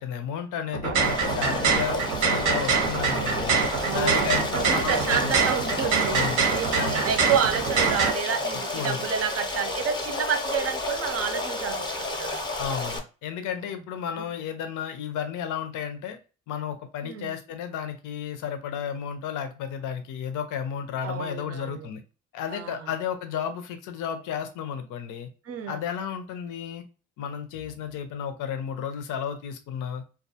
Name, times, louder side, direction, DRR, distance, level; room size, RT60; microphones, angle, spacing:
voice 1, 0.0-3.6 3.9-5.3 6.1-6.4 6.8-7.0 8.7-9.1 12.6-16.2 16.5-22.0 22.3-25.3 25.7-26.8 27.2-30.0, left 8 dB, 85° left, 8 dB, 0.5 m, -33 dB
sound 1, 0.7-8.1, right 5 dB, 85° right, 0.8 m, -25 dB
Stream, 1.0-13.0, left 2 dB, 15° left, 0.6 m, -31 dB
voice 2, 1.5-1.8 3.8-6.2 6.5-12.4 17.0-17.3 21.0-21.9 22.5-22.9 25.5-25.8, right 7 dB, 50° right, 8 dB, 0.5 m, -30 dB
2.3 x 2.1 x 2.7 m, 0.34 s
cardioid pair, 90°, 30 cm